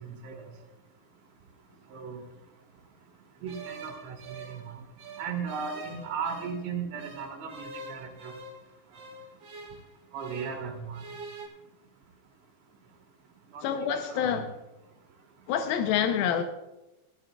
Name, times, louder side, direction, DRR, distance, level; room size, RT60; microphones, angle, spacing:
voice 1, 0.0-0.4 1.9-2.2 3.4-4.7 5.2-8.3 10.1-11.0 13.5-13.6 14.1-14.4, right 6 dB, 80° right, 3.9 m, -36 dB
sound 1, 3.5-6.6 7.0-10.7 10.9-11.5, right 2 dB, 40° right, 2.6 m, -45 dB
voice 2, 13.6-14.5 15.5-16.4, left 8 dB, 80° left, 2.2 m, -27 dB
18.0 x 14.0 x 2.3 m
omnidirectional pair, 5.1 m